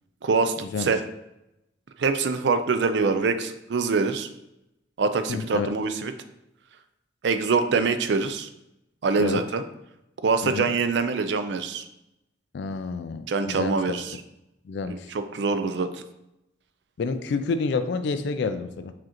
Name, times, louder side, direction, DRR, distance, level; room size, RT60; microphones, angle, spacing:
voice 1, 0.2-1.0 2.0-4.3 5.0-6.1 7.2-8.5 9.0-9.6 10.2-11.8 13.3-14.2 14.8-16.0, right 4 dB, 65° right, 9 dB, 0.4 m, -24 dB
voice 2, 5.3-5.7 9.2-9.4 10.4-10.7 12.5-13.8 14.7-15.1 17.0-18.9, left 4 dB, 65° left, 10 dB, 0.3 m, -29 dB
4.9 x 3.7 x 2.9 m, 0.88 s
head